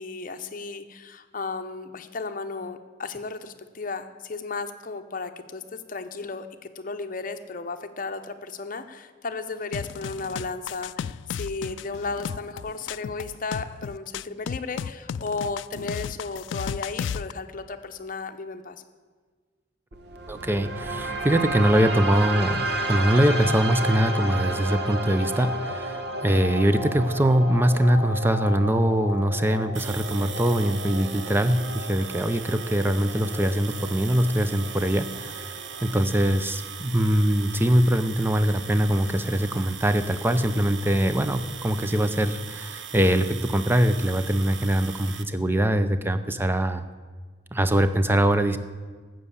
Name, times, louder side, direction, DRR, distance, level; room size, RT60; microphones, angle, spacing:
voice 1, 0.0-6.5 6.7-18.8, left 4 dB, 45° left, 8 dB, 0.8 m, -34 dB
sound 1, 9.7-17.3, left 7 dB, 80° left, 0.3 m, -34 dB
sound 2, 19.9-35.9, right 1 dB, 60° right, 1.2 m, -32 dB
voice 2, 20.3-46.8 47.5-48.6, right 1 dB, 10° right, 10 dB, 0.6 m, -23 dB
sound 3, 29.7-45.2, right 8 dB, 80° right, 0.9 m, -39 dB
12.5 x 7.7 x 8.4 m, 1.5 s
head